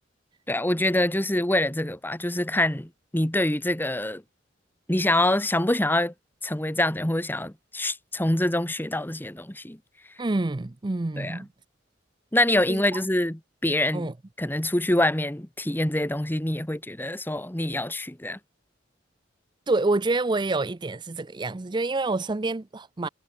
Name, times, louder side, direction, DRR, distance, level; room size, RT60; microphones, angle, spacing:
voice 1, 0.5-4.2 4.9-6.1 6.4-9.8 11.2-11.5 12.3-14.1 14.4-18.4, left 1 dB, 10° left, 1.3 m, -25 dB
voice 2, 10.2-11.5 12.7-13.0 13.9-14.1 19.7-23.1, right 2 dB, 25° right, 0.5 m, -27 dB
head